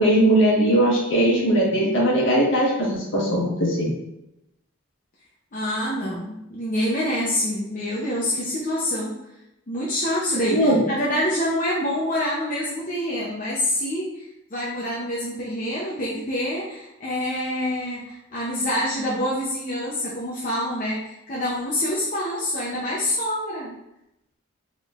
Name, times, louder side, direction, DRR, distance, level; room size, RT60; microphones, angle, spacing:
voice 1, 0.0-3.9 10.5-10.8, right 1 dB, 60° left, -5 dB, 1.3 m, -19 dB
voice 2, 5.5-9.1 9.7-14.3 14.5-23.7, left 1 dB, 40° left, -6 dB, 0.7 m, -26 dB
4.3 x 3.7 x 2.4 m, 0.87 s
head